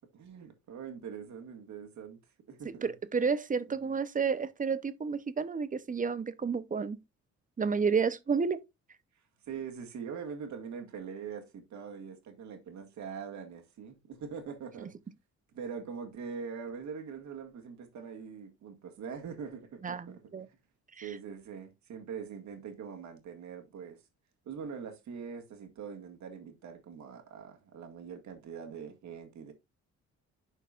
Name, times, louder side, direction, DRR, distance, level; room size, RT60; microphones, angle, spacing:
voice 1, 0.1-2.2 2.5-2.9 3.8-3.9 9.5-14.9 15.5-20.2 21.0-24.0 24.5-29.5, right 6 dB, 70° right, 2.0 m, -43 dB
voice 2, 2.8-7.0 7.6-8.6 19.8-20.5 21.0-21.1, right 5 dB, 25° right, 0.8 m, -31 dB
11.5 x 4.5 x 2.5 m
cardioid pair, 90°, 30 cm